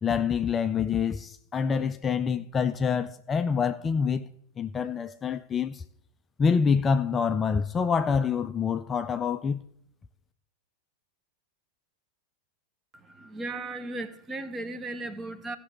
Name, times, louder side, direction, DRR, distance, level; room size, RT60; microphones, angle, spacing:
voice 1, 0.0-4.3 4.6-5.8 6.4-9.6, left 6 dB, 20° left, 0.4 m, -26 dB
voice 2, 12.9-15.6, right 2 dB, 20° right, 1.0 m, -36 dB
16.0 x 6.1 x 4.3 m
figure-of-eight pair, 90°, 0 cm